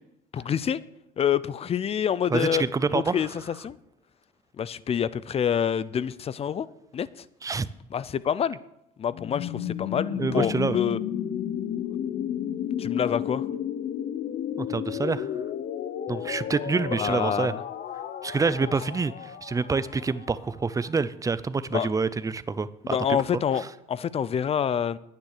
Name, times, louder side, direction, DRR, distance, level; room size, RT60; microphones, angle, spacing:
voice 1, 0.3-0.8 1.2-2.6 2.9-3.8 4.6-6.7 6.9-7.1 7.9-8.6 9.0-11.0 12.8-13.4 16.9-17.6 21.7-21.9 22.8-25.0, left 8 dB, 35° left, 0.5 m, -27 dB
voice 2, 2.3-3.3 7.4-7.7 10.2-10.8 14.6-15.3 16.1-17.5 18.2-23.0 23.5-23.7, right 4 dB, 20° right, 0.6 m, -27 dB
sound 1, 9.1-20.9, left 9 dB, 60° left, 0.9 m, -32 dB
10.0 x 9.4 x 6.6 m
cardioid pair, 110°, 17 cm